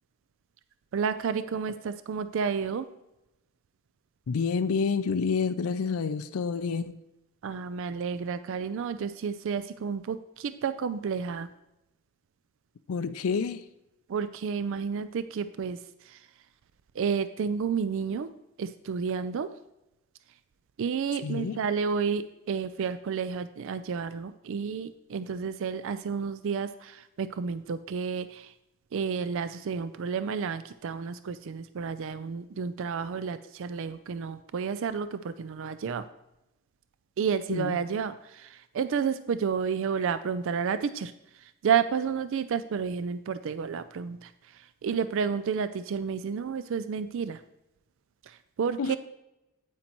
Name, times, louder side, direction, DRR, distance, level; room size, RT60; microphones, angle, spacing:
voice 1, 0.9-2.8 7.4-11.5 14.1-15.8 17.0-18.3 18.6-19.5 20.8-28.5 28.9-36.0 37.2-41.1 41.6-44.3 44.8-47.4 48.6-49.0, right 6 dB, 60° right, 12 dB, 0.4 m, -31 dB
voice 2, 4.3-7.0 12.9-13.6 21.1-21.6 37.5-37.8 48.8-49.0, left 5 dB, 70° left, 11 dB, 0.4 m, -29 dB
9.2 x 8.8 x 3.0 m, 0.91 s
head